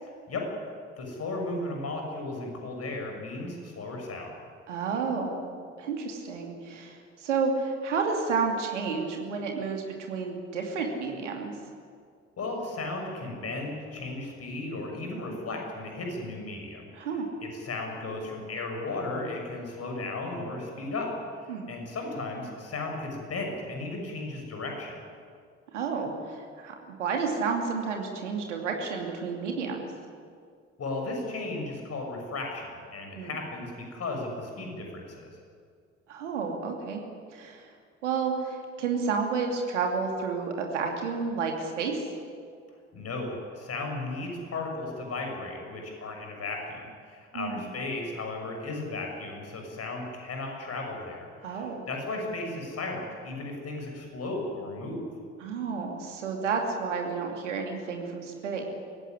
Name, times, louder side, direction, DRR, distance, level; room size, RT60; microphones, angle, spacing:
voice 1, 0.0-0.4 1.0-4.3 12.4-16.9 17.4-21.1 21.4-25.0 30.8-35.3 42.9-55.1, left 2 dB, 40° left, 2 dB, 7.1 m, -35 dB
voice 2, 4.7-5.5 5.8-11.5 16.9-17.3 21.5-21.7 25.7-29.9 33.1-33.4 36.1-37.0 37.3-37.7 38.0-42.1 47.3-47.7 51.4-51.8 55.4-58.6, right 5 dB, 75° right, 2 dB, 2.8 m, -31 dB
24.0 x 16.5 x 9.9 m, 2.1 s
figure-of-eight pair, 50°, 36 cm